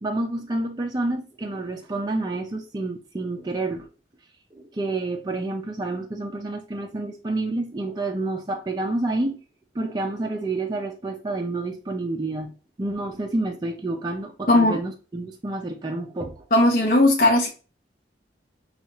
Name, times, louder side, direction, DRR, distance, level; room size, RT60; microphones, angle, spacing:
voice 1, 0.0-3.9 4.5-9.4 9.7-12.5 12.8-16.4, right 2 dB, 25° right, 0.4 m, -29 dB
voice 2, 14.5-14.8 16.5-17.5, left 1 dB, 50° left, 0.7 m, -17 dB
5.3 x 2.4 x 3.0 m
head